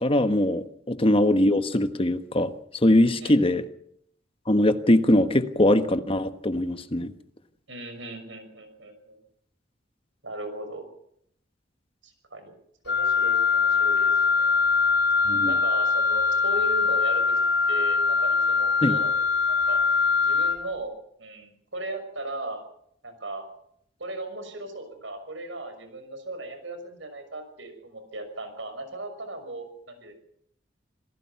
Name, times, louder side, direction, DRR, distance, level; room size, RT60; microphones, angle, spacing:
voice 1, 0.0-2.5 2.8-3.6 4.5-7.1 15.3-15.5 18.8-19.0, left 1 dB, 30° left, 9 dB, 1.3 m, -21 dB
voice 2, 3.2-3.5 7.7-9.2 10.2-10.8 12.0-12.5 12.8-14.5 15.3-17.3 17.7-19.1 19.5-19.8 20.2-20.9 21.2-22.6 23.0-23.5 24.0-30.2, right 2 dB, 80° right, 8 dB, 6.1 m, -37 dB
Wind instrument woodwind instrument, 12.9-20.6, left 5 dB, 60° left, 2.9 m, -22 dB
27.0 x 17.5 x 5.9 m, 0.70 s
head